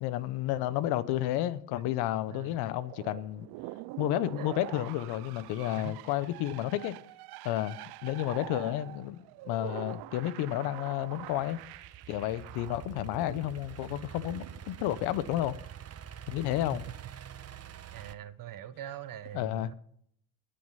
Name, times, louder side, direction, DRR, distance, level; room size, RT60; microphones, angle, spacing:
voice 1, 0.0-3.5 4.0-6.9 7.4-11.6 12.1-15.5 16.3-16.8 19.3-19.7, left 13 dB, 85° left, 1.0 m, -31 dB
voice 2, 2.3-2.6 4.4-4.5 5.8-6.0 12.6-12.7 17.9-19.7, right 11 dB, 60° right, 1.2 m, -43 dB
sound 1, 2.6-15.3, right 18 dB, 80° right, 0.6 m, -46 dB
Idling / Accelerating revving vroom, 11.0-18.1, right 9 dB, 40° right, 0.9 m, -46 dB
20.0 x 6.7 x 5.7 m
supercardioid pair, 80°, 38 cm